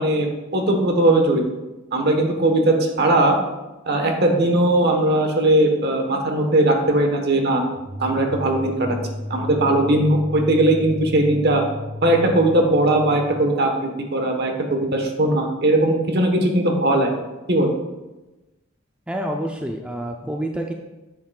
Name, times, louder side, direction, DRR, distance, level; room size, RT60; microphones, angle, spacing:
voice 1, 0.0-1.4 1.9-3.4 3.9-7.6 8.0-8.9 9.3-11.6 12.0-17.1 17.5-17.7, right 1 dB, 50° right, 3 dB, 1.1 m, -19 dB
sound 1, 7.7-13.4, left 2 dB, 30° right, 1.3 m, -34 dB
voice 2, 19.1-20.7, right 1 dB, 5° right, 2 dB, 0.4 m, -28 dB
9.3 x 7.5 x 2.3 m, 1.1 s
head